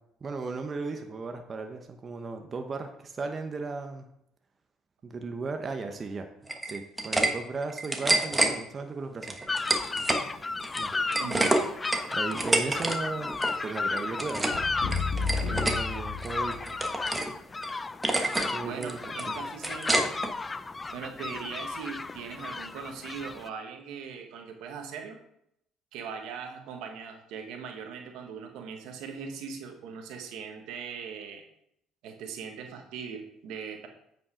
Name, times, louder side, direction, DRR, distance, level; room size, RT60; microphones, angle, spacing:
voice 1, 0.2-4.1 5.0-6.3 6.6-9.4 10.8-10.9 12.1-13.3 13.6-14.5 15.5-16.8 18.5-19.0 19.3-19.4, right 4 dB, 35° right, 5 dB, 0.9 m, -36 dB
sound 1, 6.5-7.3 7.6-8.5 9.2-10.2 10.6-13.0 13.2-13.6 13.9-14.6 14.9-15.8 16.2-17.3 17.6-17.7 18.0-18.5 18.8-20.3, right 2 dB, 15° right, 1.2 m, -27 dB
sound 2, 9.5-23.5, left 3 dB, 25° left, 0.4 m, -34 dB
voice 2, 11.2-11.5 18.6-20.0 20.9-25.2 25.9-31.4 32.0-33.9, right 6 dB, 75° right, 4 dB, 1.4 m, -40 dB
sound 3, 14.5-16.8, left 4 dB, 75° left, 1.9 m, -32 dB
8.5 x 5.3 x 5.0 m, 0.76 s
supercardioid pair, 80°, 0 cm